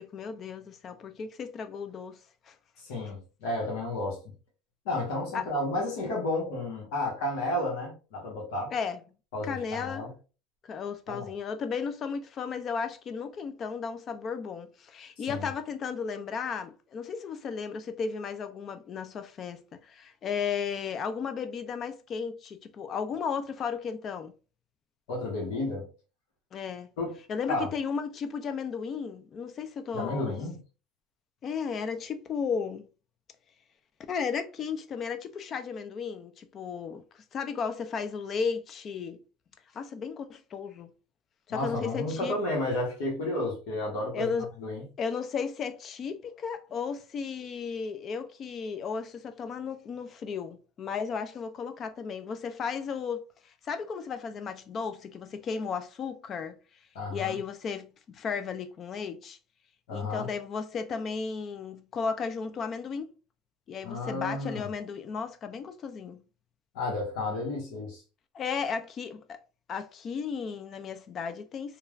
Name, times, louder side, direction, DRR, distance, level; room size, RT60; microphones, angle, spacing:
voice 1, 0.0-2.2 2.5-2.6 5.3-5.5 8.7-9.0 9.4-10.1 10.6-24.3 26.5-26.9 27.3-30.3 31.4-32.9 34.1-39.2 39.7-40.9 41.5-42.4 44.1-44.5 45.0-56.6 57.1-59.4 59.9-63.1 63.7-66.2 68.3-69.4 69.7-71.8, left 6 dB, 35° left, 0.3 m, -34 dB
voice 2, 2.8-4.2 4.8-8.7 9.3-10.1 11.1-11.3 15.3-15.5 25.1-25.9 27.0-27.2 27.5-27.7 29.9-30.6 41.5-44.8 56.9-57.4 59.9-60.3 63.8-64.7 66.7-68.0, left 2 dB, 80° left, 1.1 m, -32 dB
3.1 x 2.3 x 2.3 m
supercardioid pair, 140°, 0 cm